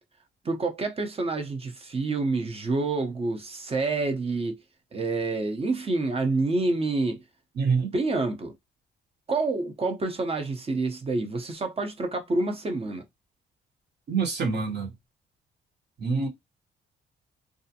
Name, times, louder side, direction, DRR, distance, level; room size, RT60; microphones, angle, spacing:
voice 1, 0.4-4.6 4.9-7.2 7.9-8.5 9.3-13.0, right 3 dB, 30° right, 0.7 m, -28 dB
voice 2, 7.6-7.9 14.1-14.9 16.0-16.3, right 5 dB, 55° right, 1.1 m, -26 dB
2.4 x 2.1 x 2.7 m
cardioid pair, 90°, 20 cm